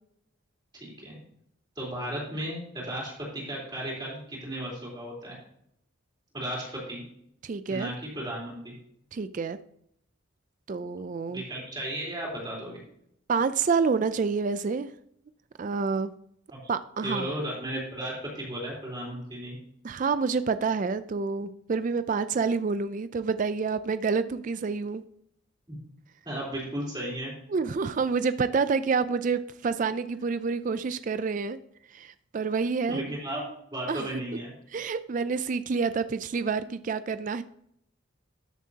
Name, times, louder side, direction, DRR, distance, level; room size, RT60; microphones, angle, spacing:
voice 1, 0.7-1.2 1.8-5.4 6.3-7.0 7.7-8.7 11.3-12.8 17.0-19.6 25.7-25.8 26.2-27.3 32.9-33.4 33.7-34.5, right 1 dB, 20° right, -4 dB, 3.6 m, -35 dB
voice 2, 7.4-7.9 9.1-9.6 10.7-11.4 13.3-14.9 15.6-16.1 16.7-17.3 19.8-25.0 27.5-31.6 31.9-33.2 33.9-34.1 34.7-37.4, right 5 dB, 40° right, 12 dB, 0.3 m, -28 dB
13.5 x 7.3 x 2.8 m, 0.71 s
head